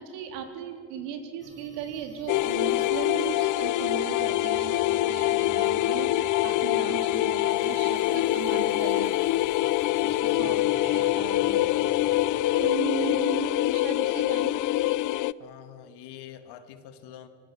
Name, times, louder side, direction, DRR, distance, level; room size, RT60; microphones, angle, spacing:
voice 1, 0.0-9.1 9.8-10.6 10.8-11.6 12.6-14.6, right 9 dB, 70° right, 5 dB, 3.6 m, -37 dB
sound 1, 1.4-13.0, right 3 dB, 35° right, 4.8 m, -51 dB
sound 2, 2.3-15.3, left 15 dB, 45° left, 0.5 m, -25 dB
voice 2, 10.4-10.8 15.4-17.3, left 10 dB, 60° left, 9 dB, 2.2 m, -45 dB
24.5 x 22.0 x 7.3 m, 2.4 s
supercardioid pair, 90°, 44 cm